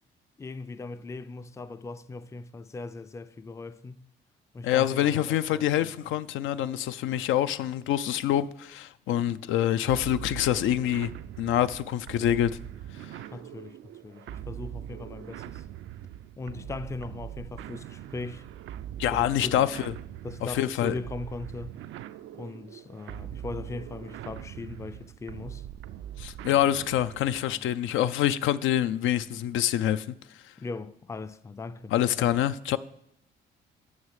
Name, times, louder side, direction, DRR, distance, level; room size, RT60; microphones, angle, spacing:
voice 1, 0.4-4.1 4.5-5.9 13.3-15.6 16.4-18.5 19.1-19.7 20.2-21.8 22.3-25.7 27.4-27.7 30.6-32.5, left 3 dB, 15° left, 0.4 m, -39 dB
voice 2, 4.6-11.1 11.4-12.5 13.0-13.1 19.0-19.9 20.5-20.9 26.2-30.1 31.9-32.8, left 11 dB, 80° left, 0.4 m, -26 dB
sound 1, 9.9-27.5, right 11 dB, 75° right, 0.4 m, -42 dB
6.3 x 6.2 x 7.4 m
cardioid pair, 90°, 20 cm